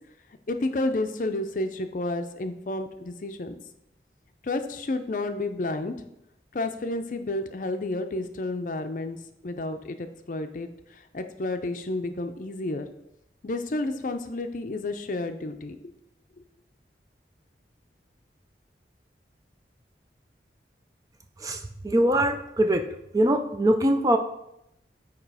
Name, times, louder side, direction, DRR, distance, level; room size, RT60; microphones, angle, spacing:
voice 1, 0.5-3.6 4.4-5.9 6.5-9.2 9.4-12.9 13.4-15.9, left 2 dB, 45° left, 8 dB, 0.5 m, -31 dB
voice 2, 21.4-22.8 23.1-24.2, right 1 dB, 20° right, 7 dB, 0.4 m, -22 dB
8.8 x 2.9 x 4.8 m, 0.82 s
head